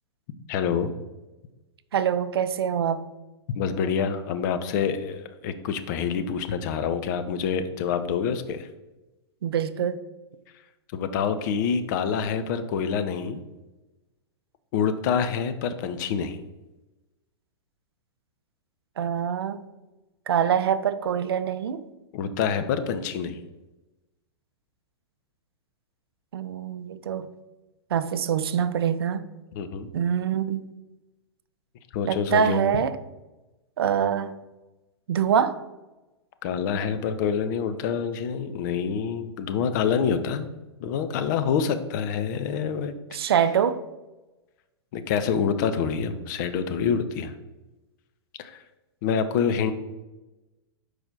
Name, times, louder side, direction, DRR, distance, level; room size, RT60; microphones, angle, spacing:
voice 1, 0.5-0.9 3.5-8.7 10.9-13.4 14.7-16.4 22.1-23.4 29.5-29.9 31.9-32.6 36.4-40.5 40.8-43.0 44.9-47.3 48.4-48.6 49.0-49.7, left 7 dB, 40° left, 10 dB, 0.6 m, -26 dB
voice 2, 1.9-3.0 9.4-10.0 19.0-19.6 20.3-21.8 26.3-27.3 27.9-29.2 29.9-30.6 32.0-33.0 33.8-34.3 35.1-35.6 43.1-43.8, right 8 dB, 60° right, 13 dB, 0.5 m, -24 dB
6.0 x 4.8 x 3.9 m, 1.1 s
figure-of-eight pair, 105°, 14 cm